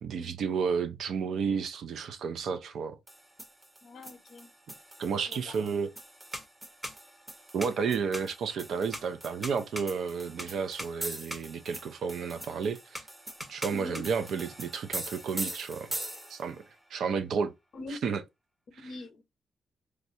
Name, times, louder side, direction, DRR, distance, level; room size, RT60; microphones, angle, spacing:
voice 1, 0.0-3.0 5.0-5.9 7.5-13.0 13.5-15.9 16.3-16.6 16.9-17.5 17.9-18.2 18.8-18.9, right 6 dB, 75° right, 0.4 m, -32 dB
sound 1, 3.1-16.6, right 1 dB, 15° right, 0.8 m, -41 dB
voice 2, 3.8-4.5 5.3-5.7 13.7-14.0 17.7-18.0 18.7-19.2, left 2 dB, 60° left, 0.7 m, -43 dB
3.2 x 2.4 x 2.6 m
cardioid pair, 90°, 0 cm